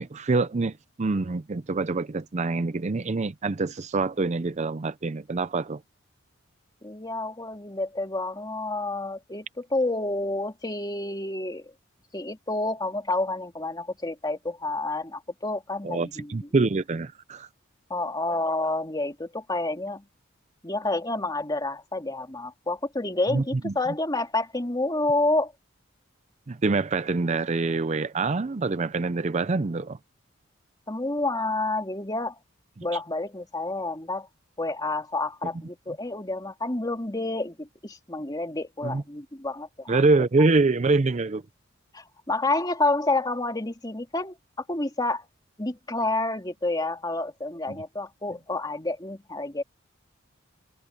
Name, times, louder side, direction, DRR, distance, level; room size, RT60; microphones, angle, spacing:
voice 1, 0.0-5.8 15.8-17.5 23.3-23.7 26.5-30.0 38.8-39.0 39.9-41.4, right 3 dB, 35° right, 0.5 m, -25 dB
voice 2, 6.8-11.7 12.1-16.4 17.9-20.0 20.6-25.5 30.9-32.3 32.8-34.3 34.6-40.0 41.9-44.4 44.7-45.3 45.6-49.6, left 2 dB, 20° left, 2.6 m, -29 dB
head